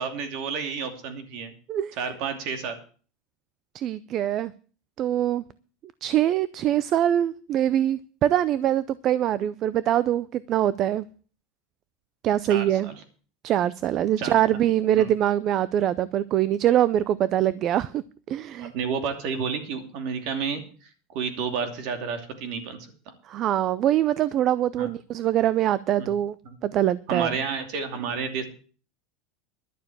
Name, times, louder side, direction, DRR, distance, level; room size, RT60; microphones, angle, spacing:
voice 1, 0.0-1.5 2.0-2.8 12.5-12.9 14.2-14.4 15.0-15.1 18.6-22.8 24.8-24.9 26.0-26.1 26.4-26.6 27.1-28.4, right 6 dB, 55° right, 2.7 m, -31 dB
voice 2, 3.7-4.5 5.0-5.4 6.0-11.0 12.2-12.9 13.4-18.0 18.3-18.7 23.3-26.4 26.6-27.3, right 11 dB, 35° right, 0.5 m, -23 dB
12.0 x 6.8 x 8.6 m
supercardioid pair, 150°, 0 cm